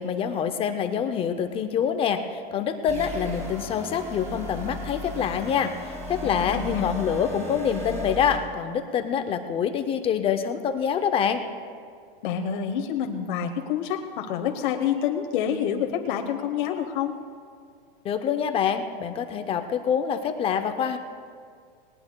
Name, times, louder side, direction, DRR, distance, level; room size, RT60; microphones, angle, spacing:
voice 1, 0.0-11.4 18.0-21.0, left 7 dB, 20° left, 8 dB, 0.5 m, -26 dB
sound 1, 2.9-8.4, left 1 dB, 10° right, 4.3 m, -36 dB
voice 2, 6.2-6.9 12.2-17.2, left 8 dB, 55° left, 3 dB, 1.0 m, -28 dB
19.5 x 19.0 x 2.2 m, 2.2 s
supercardioid pair, 145°, 29 cm